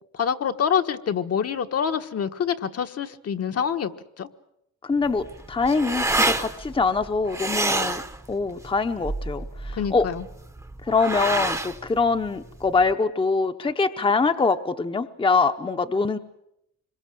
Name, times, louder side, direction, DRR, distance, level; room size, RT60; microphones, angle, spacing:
voice 1, 0.1-3.9 4.2-4.3 9.7-10.2, left 7 dB, 55° left, 7 dB, 1.3 m, -26 dB
voice 2, 4.8-8.0 8.3-10.1 10.8-16.2, left 4 dB, 20° left, 8 dB, 0.9 m, -24 dB
sound 1, 5.0-12.9, right 2 dB, 10° right, 0.9 m, -28 dB
26.0 x 22.5 x 7.6 m, 0.78 s
wide cardioid pair, 155°, 29 cm